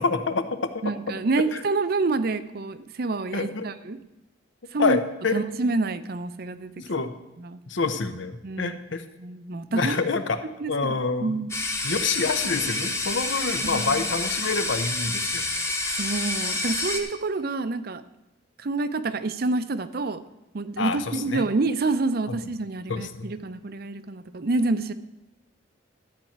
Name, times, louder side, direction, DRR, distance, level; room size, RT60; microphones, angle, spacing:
voice 1, 0.0-0.8 1.5-1.6 3.3-3.7 4.8-5.3 6.8-7.2 7.7-9.0 9.7-10.4 10.7-11.4 11.8-15.6 20.8-21.4 22.3-22.4 22.9-23.3, left 4 dB, 75° left, 9 dB, 0.9 m, -27 dB
voice 2, 0.8-4.0 4.7-5.0 5.3-6.8 7.4-7.6 8.4-8.8 9.2-10.0 10.6-11.5 13.6-14.1 15.9-18.0 18.6-20.2 20.5-24.9, right 3 dB, 55° right, 13 dB, 0.6 m, -28 dB
sound 1, 11.5-17.0, left 2 dB, 15° left, 1.0 m, -28 dB
13.0 x 4.5 x 8.6 m, 0.95 s
head